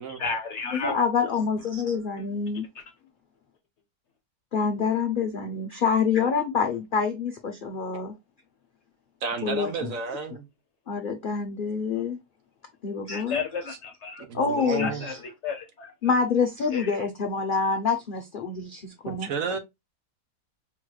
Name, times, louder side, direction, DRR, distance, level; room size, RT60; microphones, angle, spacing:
voice 1, 0.1-0.9 2.7-2.8 13.1-14.3 14.8-15.2 15.4-15.9 16.7-17.0, left 4 dB, 55° left, 0.9 m, -32 dB
voice 2, 0.7-2.7 4.5-8.1 9.4-9.9 10.9-12.2 12.8-13.4 14.3-15.2 16.0-19.3, left 5 dB, 70° left, 0.4 m, -26 dB
voice 3, 9.2-10.5 14.2-15.1 19.1-19.6, right 5 dB, 60° right, 1.1 m, -32 dB
4.7 x 3.1 x 2.2 m
omnidirectional pair, 1.7 m